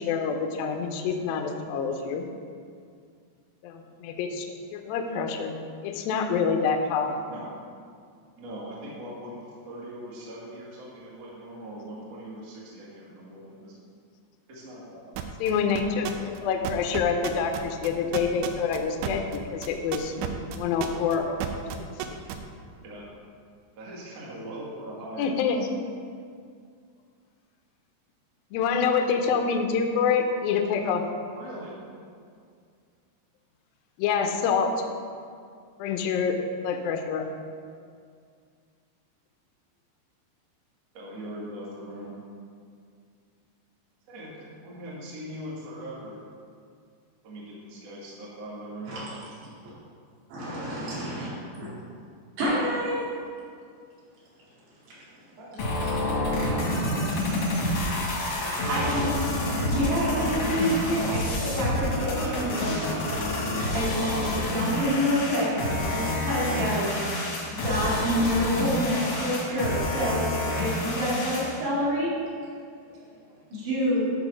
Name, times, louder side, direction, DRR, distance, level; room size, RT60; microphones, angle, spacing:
voice 1, 0.0-2.2 3.6-5.6 5.8-7.2 15.4-20.1 20.6-21.6 22.1-22.2 25.2-25.7 28.5-31.0 34.0-34.7 35.8-36.4 36.6-37.3, left 6 dB, 90° left, 4 dB, 2.0 m, -26 dB
voice 2, 8.4-9.4 9.7-13.7 14.5-15.1 22.8-23.1 23.8-25.4 31.4-31.7 40.9-42.1 44.1-46.2 47.2-48.9 50.5-50.7 55.4-55.7 56.0-56.4 56.9-58.0 58.4-59.2 73.9-74.0, right 1 dB, 50° right, -6 dB, 2.1 m, -41 dB
sound 1, 15.2-15.5 15.8-16.4 16.6-22.4, right 11 dB, 85° right, 2.9 m, -31 dB
voice 3, 50.3-51.3 51.6-51.7 52.4-53.0 58.1-58.3 58.6-59.1 59.5-63.3 63.7-66.9 67.5-70.3 70.6-72.1 73.5-74.0, equal, 70° right, -9 dB, 4.4 m, -28 dB
sound 2, 55.6-71.6, left 1 dB, 65° left, 1.4 m, -28 dB
11.0 x 3.9 x 6.1 m, 2.2 s
omnidirectional pair, 5.2 m